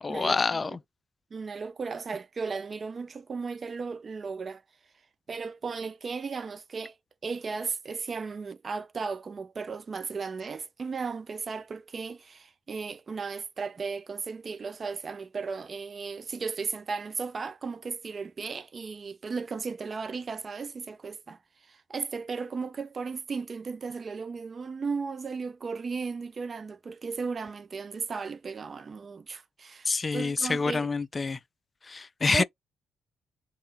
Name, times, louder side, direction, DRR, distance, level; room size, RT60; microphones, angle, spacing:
voice 1, 0.0-0.8 29.9-31.4 31.9-32.4, left 4 dB, 30° left, 0.3 m, -27 dB
voice 2, 1.3-4.6 5.3-7.0 7.2-30.9 32.3-32.4, right 5 dB, 40° right, 0.4 m, -35 dB
3.6 x 2.5 x 3.3 m
cardioid pair, 90°, 0 cm